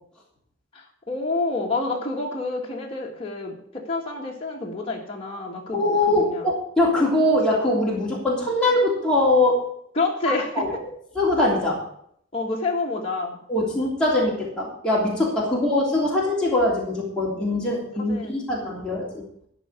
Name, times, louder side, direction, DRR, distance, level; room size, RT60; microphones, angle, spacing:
voice 1, 0.7-6.5 10.0-10.8 12.3-13.4 15.5-15.6 17.7-17.8 18.1-18.5, left 3 dB, 30° left, -2 dB, 1.8 m, -29 dB
voice 2, 5.7-9.6 10.6-10.7 11.1-11.8 13.5-19.2, left 1 dB, 5° left, -6 dB, 3.1 m, -22 dB
13.0 x 5.6 x 8.3 m, 0.67 s
head